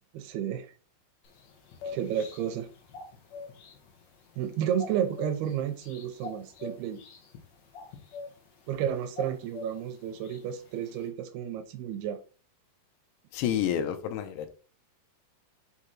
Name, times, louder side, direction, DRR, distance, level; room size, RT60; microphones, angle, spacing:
voice 1, 0.1-0.7 1.8-2.7 4.4-7.0 8.7-12.2, right 9 dB, 80° right, 2.6 m, -31 dB
sound 1, 1.2-11.1, left 4 dB, 60° left, 1.9 m, -46 dB
voice 2, 13.3-14.5, left 9 dB, 85° left, 2.8 m, -29 dB
5.8 x 5.0 x 4.2 m
omnidirectional pair, 4.8 m